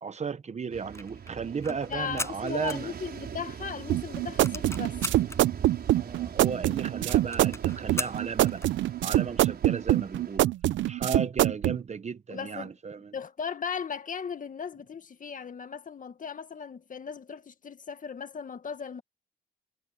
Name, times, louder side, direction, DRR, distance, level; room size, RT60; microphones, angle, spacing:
voice 1, 0.0-2.9 5.9-8.7 9.0-10.5 10.9-13.1, right 5 dB, 35° right, 1.0 m, -35 dB
sound 1, 0.7-10.4, right 7 dB, 55° right, 6.5 m, -42 dB
sound 2, 0.8-3.5 3.8-3.9 4.1-5.4 6.0-6.1 6.3-6.4 6.7-6.8 7.1-8.8, left 2 dB, 15° left, 5.6 m, -38 dB
voice 2, 1.7-5.0 12.3-12.7 13.1-19.0, left 6 dB, 40° left, 1.9 m, -37 dB
sound 3, 3.9-11.8, right 14 dB, 70° right, 0.6 m, -24 dB
cardioid pair, 90°, 20 cm